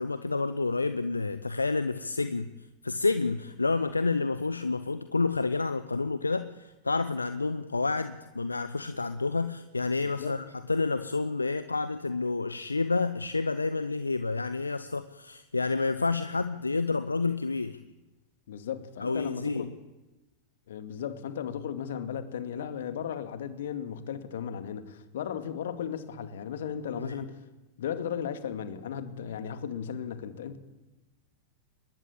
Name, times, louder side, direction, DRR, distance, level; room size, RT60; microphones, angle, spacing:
voice 1, 0.0-2.5 2.8-17.8 19.0-19.6 26.9-27.2, left 3 dB, 80° left, 0.9 m, -29 dB
voice 2, 10.0-10.3 18.5-19.7 20.7-27.5 27.8-30.6, left 8 dB, 60° left, 2.3 m, -36 dB
23.5 x 21.0 x 8.7 m
figure-of-eight pair, 90°, 0 cm